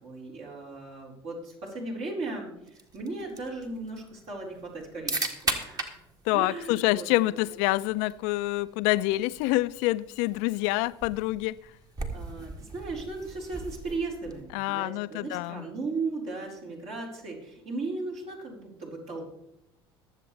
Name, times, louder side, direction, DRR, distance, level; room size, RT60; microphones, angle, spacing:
voice 1, 0.0-6.0 6.3-7.6 12.1-19.4, right 3 dB, 55° right, 4.4 m, -37 dB
sound 1, 2.7-14.6, right 2 dB, 30° right, 1.8 m, -39 dB
voice 2, 6.3-11.5 14.5-15.6, left 18 dB, 65° left, 0.5 m, -27 dB
21.5 x 7.5 x 3.3 m
hypercardioid pair, 70°, 13 cm